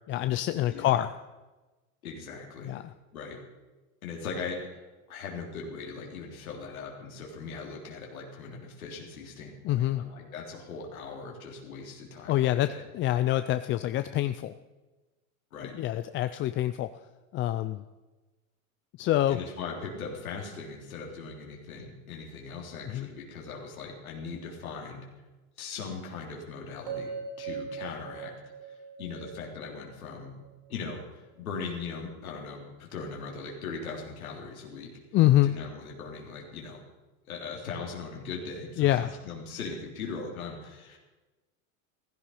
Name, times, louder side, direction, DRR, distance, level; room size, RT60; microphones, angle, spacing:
voice 1, 0.1-1.1 2.6-2.8 9.6-10.0 12.3-14.5 15.8-16.9 17.3-17.8 19.0-19.4 22.9-23.1 35.1-35.5 38.8-39.1, left 14 dB, 30° left, 11 dB, 0.4 m, -26 dB
voice 2, 0.6-1.1 2.0-2.8 3.1-3.4 4.0-12.8 15.5-15.8 19.3-25.1 25.6-28.3 28.6-30.4 30.7-34.9 35.4-36.8 37.2-41.0, left 4 dB, 90° left, -1 dB, 3.5 m, -40 dB
sound 1, 26.9-31.0, right 6 dB, 60° right, 4.6 m, -40 dB
15.5 x 13.0 x 5.6 m, 1.2 s
hypercardioid pair, 110°, 41 cm